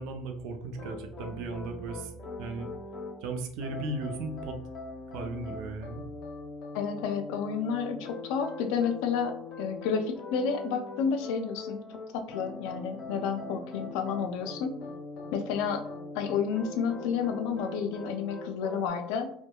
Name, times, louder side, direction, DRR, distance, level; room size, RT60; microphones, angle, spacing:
voice 1, 0.0-2.1 2.4-2.7 3.2-4.6 5.1-6.0, right 3 dB, 70° right, 5 dB, 0.4 m, -36 dB
sound 1, 0.7-3.1 3.6-18.9, left 3 dB, 50° left, 0.7 m, -42 dB
voice 2, 6.7-11.8 12.1-14.8 15.3-15.8 16.1-19.3, left 6 dB, 70° left, 6 dB, 0.4 m, -30 dB
2.7 x 2.1 x 2.2 m, 0.68 s
hypercardioid pair, 80°, 0 cm